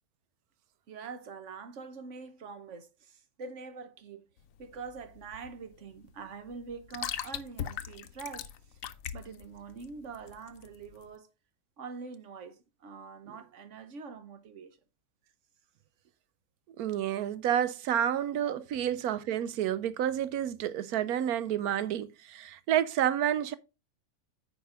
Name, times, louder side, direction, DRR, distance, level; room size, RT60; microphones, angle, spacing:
voice 1, 0.9-4.3 4.6-8.5 9.1-11.3 11.8-14.8 17.9-18.0 18.4-18.6, right 5 dB, 55° right, 1.1 m, -44 dB
sound 1, 4.4-11.1, left 10 dB, 65° left, 1.0 m, -41 dB
voice 2, 16.8-23.5, right 10 dB, 80° right, 1.1 m, -29 dB
9.0 x 5.1 x 3.7 m
omnidirectional pair, 1.6 m